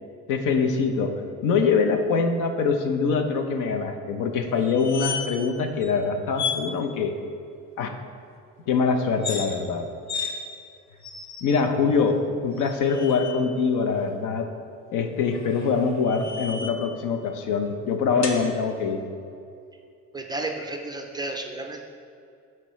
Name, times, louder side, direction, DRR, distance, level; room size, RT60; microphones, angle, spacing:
voice 1, 0.3-1.1 1.4-7.1 7.8-7.9 8.7-9.9 11.4-14.5 14.9-19.0, left 5 dB, 80° left, 6 dB, 0.8 m, -24 dB
sound 1, 4.6-5.5 5.8-5.9 6.3-6.6 9.1-9.5 10.1-10.3 11.0-11.6 12.6-13.4 15.3-16.9 18.2-18.4, left 5 dB, 60° left, 0.9 m, -33 dB
voice 2, 20.1-21.8, right 2 dB, 15° right, 2 dB, 0.3 m, -32 dB
12.0 x 4.5 x 3.1 m, 2.4 s
cardioid pair, 155°, 31 cm